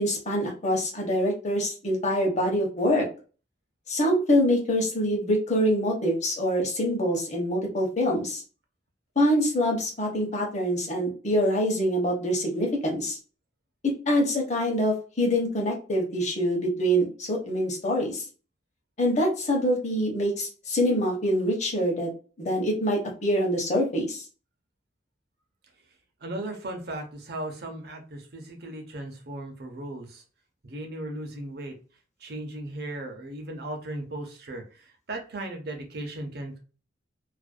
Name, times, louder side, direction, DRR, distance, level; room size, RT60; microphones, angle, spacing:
voice 1, 0.0-3.1 3.9-8.4 9.2-13.2 14.1-18.3 19.0-22.1 22.4-24.2, equal, 40° left, 0 dB, 0.8 m, -25 dB
voice 2, 26.2-30.2 30.6-31.7 32.2-36.6, right 1 dB, 60° right, 4 dB, 0.6 m, -37 dB
2.4 x 2.1 x 2.4 m, 0.37 s
head